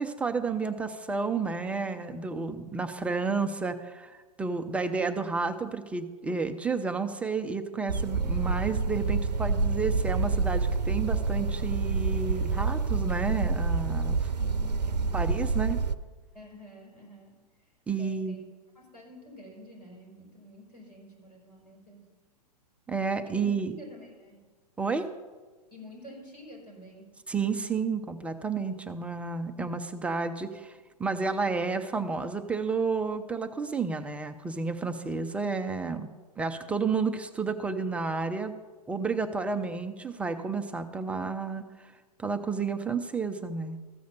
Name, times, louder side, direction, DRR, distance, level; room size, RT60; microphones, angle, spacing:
voice 1, 0.0-14.3 15.1-15.8 17.9-18.4 22.9-23.7 24.8-25.1 27.3-36.1 36.4-38.5 38.9-41.6 42.2-43.8, right 4 dB, 5° right, 8 dB, 0.3 m, -31 dB
sound 1, 7.9-16.0, right 4 dB, 75° right, 0.5 m, -28 dB
voice 2, 14.3-15.7 16.3-18.4 18.7-22.1 23.2-24.4 25.7-27.1, left 1 dB, 80° left, -2 dB, 4.6 m, -49 dB
14.0 x 6.3 x 6.7 m, 1.3 s
figure-of-eight pair, 110°, 21 cm